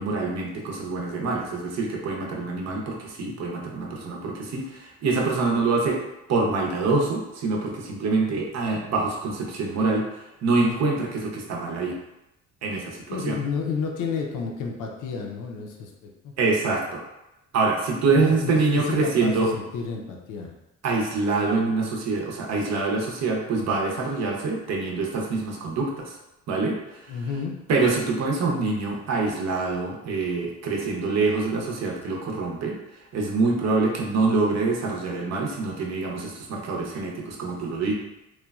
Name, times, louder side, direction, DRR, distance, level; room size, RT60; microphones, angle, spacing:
voice 1, 0.0-6.0 6.3-10.1 10.4-12.0 12.6-13.4 16.4-17.0 17.5-19.5 20.8-26.1 26.5-26.8 27.7-32.8 33.1-37.9, right 3 dB, 60° right, 0 dB, 0.7 m, -25 dB
voice 2, 2.4-2.8 13.1-16.3 18.1-20.5 27.1-27.5, left 5 dB, 85° left, 1 dB, 0.5 m, -31 dB
3.0 x 2.2 x 2.3 m, 0.94 s
cardioid pair, 90°, 30 cm